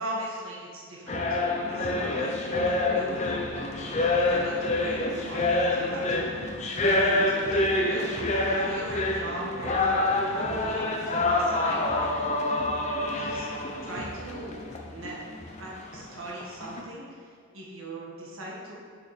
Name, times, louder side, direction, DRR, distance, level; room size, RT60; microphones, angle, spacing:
voice 1, 0.0-1.4 1.7-12.1 13.2-13.5 13.8-14.5 14.8-18.7, right 1 dB, 70° right, -4 dB, 1.6 m, -40 dB
sound 1, 1.1-16.8, left 2 dB, 30° left, 0.7 m, -27 dB
6.8 x 6.8 x 4.2 m, 2.1 s
head